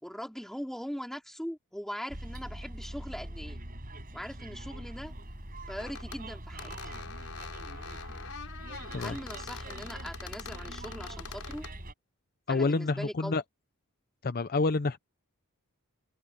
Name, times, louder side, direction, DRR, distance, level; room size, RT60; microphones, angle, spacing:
voice 1, 0.0-3.6 4.1-5.1 5.7-6.7 8.9-11.7 12.5-13.4, equal, ahead, 2.6 m, -40 dB
Bus, 2.1-11.9, right 1 dB, 40° right, 5.0 m, -43 dB
sound 1, 5.7-6.2 6.6-11.8, left 5 dB, 75° left, 4.5 m, -44 dB
voice 2, 12.5-13.4 14.2-15.0, left 3 dB, 45° left, 0.6 m, -28 dB
head